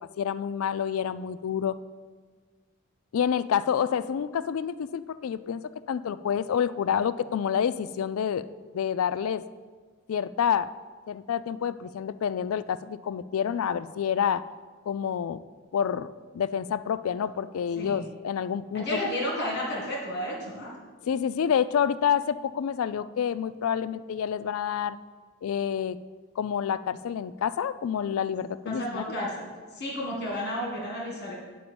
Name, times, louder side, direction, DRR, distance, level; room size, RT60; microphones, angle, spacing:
voice 1, 0.2-1.8 3.1-5.6 5.9-8.4 8.7-9.4 10.1-10.7 11.1-14.4 14.9-15.4 15.7-16.1 16.3-19.0 21.0-25.0 25.4-26.0 26.4-29.0, left 8 dB, 75° left, 15 dB, 0.3 m, -28 dB
voice 2, 17.8-18.1 18.7-20.7 28.7-31.3, left 1 dB, 50° left, -2 dB, 1.8 m, -32 dB
9.4 x 5.0 x 7.0 m, 1.5 s
head